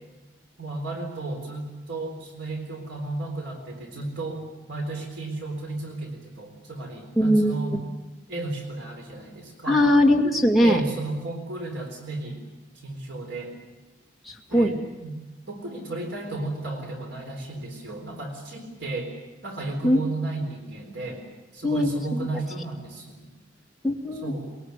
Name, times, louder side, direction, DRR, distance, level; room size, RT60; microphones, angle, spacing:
voice 1, 0.6-7.8 8.3-9.8 10.6-12.4 12.7-13.6 14.5-15.2 15.5-19.1 19.4-21.2 21.5-23.3 24.2-24.6, right 2 dB, 75° right, 2 dB, 3.9 m, -33 dB
voice 2, 7.2-7.8 9.7-10.8 14.3-14.7 19.8-20.0 21.6-22.3 23.8-24.3, left 1 dB, ahead, 1 dB, 2.2 m, -21 dB
23.0 x 22.0 x 8.3 m, 1.1 s
head